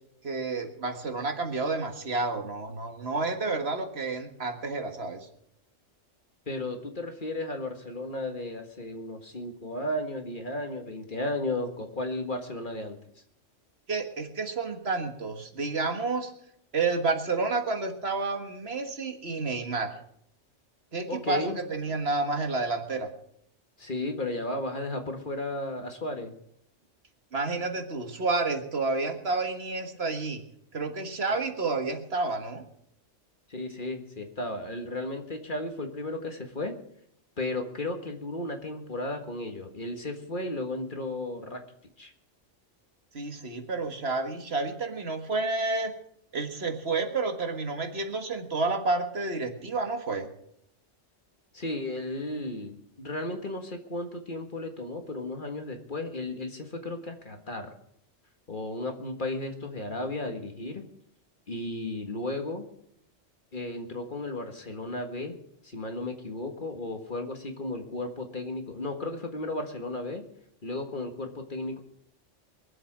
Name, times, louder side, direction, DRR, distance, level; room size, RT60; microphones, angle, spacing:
voice 1, 0.2-5.3 13.9-16.3 16.7-20.0 20.9-23.1 27.3-30.4 30.7-32.6 43.1-45.9 46.3-50.3, right 3 dB, 55° right, 5 dB, 1.8 m, -30 dB
voice 2, 6.5-13.0 21.1-21.6 23.8-26.3 33.5-36.7 37.4-41.6 42.0-42.1 51.5-57.7 58.5-60.8 61.5-62.7 63.5-65.4 65.6-70.2 70.6-71.8, left 2 dB, 40° left, 5 dB, 1.8 m, -34 dB
23.0 x 7.7 x 6.2 m, 0.73 s
omnidirectional pair, 1.3 m